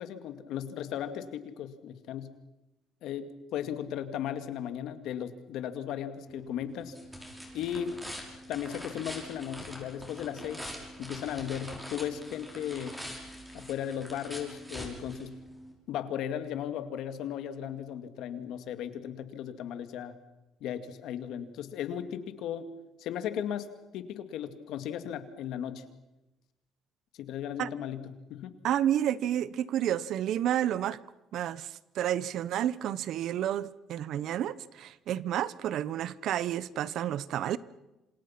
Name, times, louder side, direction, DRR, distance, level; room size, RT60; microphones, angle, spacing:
voice 1, 0.0-2.3 3.0-6.9 7.5-8.0 8.5-10.7 11.0-13.0 13.5-15.3 15.9-20.1 20.6-22.7 23.0-23.7 23.9-25.8 27.2-28.5, left 9 dB, 75° left, 2.3 m, -36 dB
sound 1, 6.3-15.7, equal, 5° right, 6.2 m, -44 dB
voice 2, 28.6-31.0 31.3-37.6, right 11 dB, 65° right, 0.9 m, -30 dB
27.5 x 27.0 x 5.9 m
cardioid pair, 125°, 0 cm